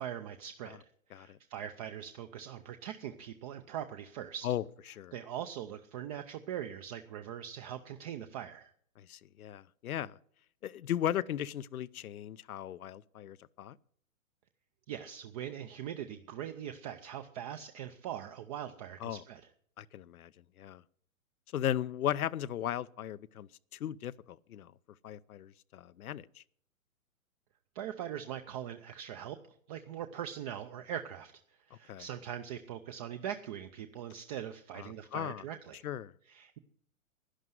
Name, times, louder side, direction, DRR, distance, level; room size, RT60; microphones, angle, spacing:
voice 1, 0.0-4.6 5.1-8.7 14.9-19.5 27.7-29.4 29.7-35.8 36.2-36.6, right 10 dB, 25° right, 0.5 m, -41 dB
voice 2, 4.4-5.1 9.1-10.1 10.6-13.7 19.0-19.2 19.8-20.3 20.6-20.8 21.5-23.5 23.8-24.7 25.0-26.3 31.9-32.0 34.8-35.4 35.8-36.1, left 11 dB, 85° left, 0.7 m, -36 dB
11.5 x 11.0 x 7.7 m
hypercardioid pair, 140°, 42 cm